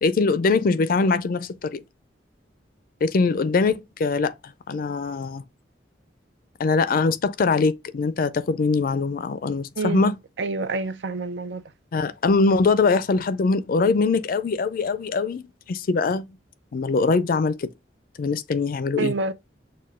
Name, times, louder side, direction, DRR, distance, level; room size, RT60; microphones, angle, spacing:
voice 1, 0.0-1.8 3.0-4.3 4.7-5.4 6.6-10.2 11.9-16.3 16.7-17.7 18.2-19.1, left 4 dB, 50° left, 0.4 m, -22 dB
voice 2, 9.8-10.1 10.4-11.6 19.0-19.3, right 3 dB, 80° right, 0.6 m, -27 dB
6.6 x 2.2 x 3.5 m
head